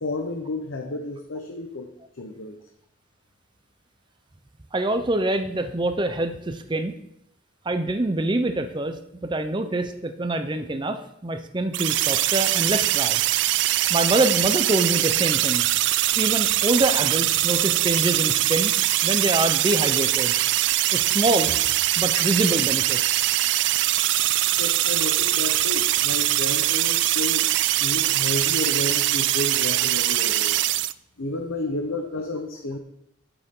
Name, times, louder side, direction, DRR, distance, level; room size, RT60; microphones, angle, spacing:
voice 1, 0.0-1.9 2.1-2.6 22.1-22.2 24.6-27.5 27.8-30.6 31.2-32.8, left 2 dB, 85° left, 4 dB, 0.9 m, -31 dB
voice 2, 4.7-6.9 7.7-9.0 9.2-13.2 13.9-15.7 16.2-18.7 19.0-20.3 20.9-21.6 22.0-23.0, right 2 dB, 25° right, 8 dB, 0.6 m, -25 dB
sound 1, 11.7-30.9, right 15 dB, 60° right, 0.3 m, -22 dB
12.0 x 7.0 x 3.7 m, 0.78 s
head